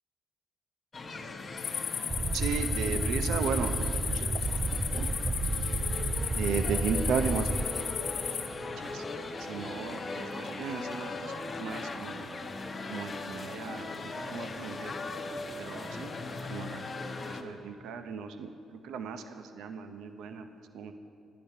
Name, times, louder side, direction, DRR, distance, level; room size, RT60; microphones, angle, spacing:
sound 1, 0.9-17.4, left 3 dB, 35° left, 0.9 m, -39 dB
sound 2, 1.6-8.5, left 7 dB, 65° left, 1.1 m, -35 dB
sound 3, 2.1-7.6, right 3 dB, 20° right, 0.3 m, -32 dB
voice 1, 2.3-4.3 4.6-5.1 6.3-7.5 8.8-9.0 9.5-11.3 11.6-12.3 12.9-14.9 15.6-16.1 16.5-18.5 18.8-20.5 20.7-20.9, right 6 dB, 85° right, 8 dB, 0.6 m, -35 dB
10.5 x 10.5 x 5.5 m, 2.5 s
cardioid pair, 90°, 0 cm